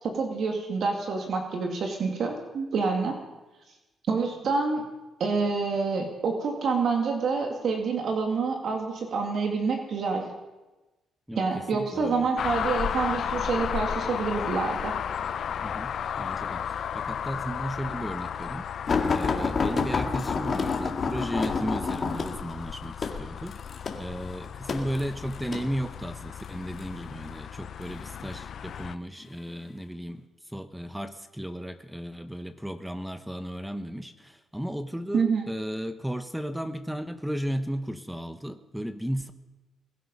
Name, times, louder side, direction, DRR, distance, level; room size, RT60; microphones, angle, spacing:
voice 1, 0.0-3.2 4.1-4.8 5.2-10.3 11.4-14.9 35.1-35.5, right 4 dB, 60° right, 3 dB, 2.3 m, -27 dB
voice 2, 11.3-12.3 15.6-18.7 19.1-23.6 24.0-39.3, equal, 5° right, 10 dB, 1.0 m, -35 dB
sound 1, 12.4-29.0, left 8 dB, 60° left, 0.7 m, -34 dB
sound 2, 18.9-25.7 26.4-26.9 27.8-28.5 29.2-29.4 29.8-29.9, left 4 dB, 40° left, 2.1 m, -29 dB
21.5 x 12.5 x 5.4 m, 1.1 s
cardioid pair, 90°, 0 cm